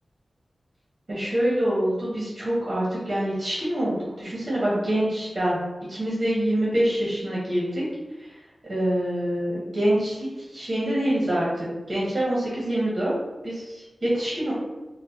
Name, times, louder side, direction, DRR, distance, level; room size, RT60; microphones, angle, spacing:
voice 1, 1.1-5.6 5.9-7.9 8.7-14.5, right 1 dB, 45° right, -6 dB, 0.9 m, -25 dB
3.1 x 2.1 x 2.7 m, 1.1 s
wide cardioid pair, 65°, 0 cm